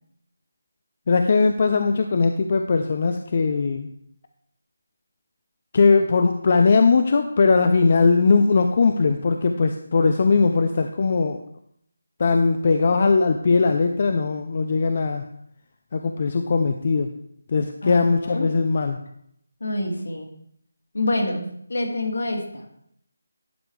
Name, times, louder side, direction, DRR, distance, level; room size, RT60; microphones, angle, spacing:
voice 1, 1.1-3.9 5.7-11.4 12.2-15.3 15.9-17.1 17.5-19.0, left 4 dB, 45° left, 7 dB, 0.6 m, -19 dB
voice 2, 17.8-18.5 19.6-20.3 20.9-22.7, left 1 dB, 75° left, 1 dB, 2.6 m, -27 dB
11.0 x 5.0 x 4.9 m, 0.70 s
figure-of-eight pair, 165°, 0 cm